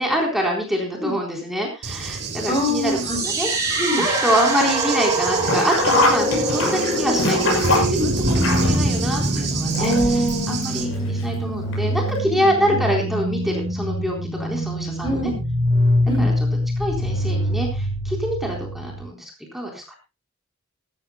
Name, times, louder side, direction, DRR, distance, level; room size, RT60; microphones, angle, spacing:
voice 1, 0.0-3.0 3.2-3.5 3.9-15.3 16.2-16.3 16.8-19.8, equal, ahead, 0 dB, 4.0 m, -25 dB
Cricket / Thunder, 1.8-10.8, right 3 dB, 50° right, 2.7 m, -27 dB
voice 2, 2.5-3.2 3.8-4.1 8.0-8.2 9.8-10.6 12.3-12.4 12.7-12.8 15.0-15.4 16.1-16.3, equal, 25° left, 4 dB, 3.9 m, -24 dB
sound 1, 3.0-19.0, equal, 15° right, 4.2 m, -24 dB
Sink (filling or washing), 5.4-10.3 10.6-10.7 11.7-11.8 12.1-12.2, left 2 dB, 70° left, 6.7 m, -23 dB
19.5 x 14.0 x 2.3 m, 0.27 s
head